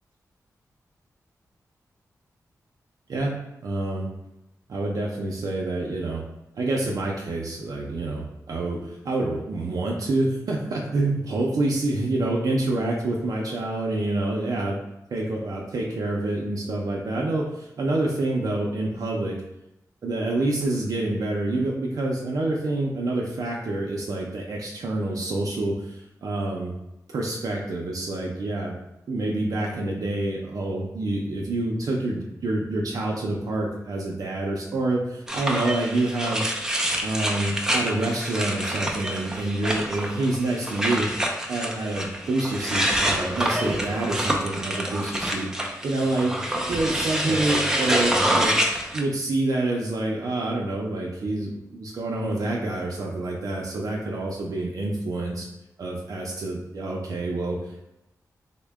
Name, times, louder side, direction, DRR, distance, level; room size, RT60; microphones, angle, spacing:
voice 1, 3.6-4.1 4.7-6.2 6.5-14.8 15.1-19.4 20.0-26.7 27.1-28.8 29.1-36.5 37.0-46.4 46.7-48.6 48.9-55.5 55.8-57.6, right 2 dB, 70° right, -2 dB, 0.5 m, -27 dB
sound 1, 35.3-49.0, equal, 10° right, 0.4 m, -27 dB
3.7 x 2.1 x 3.5 m, 0.89 s
wide cardioid pair, 130°, 6 cm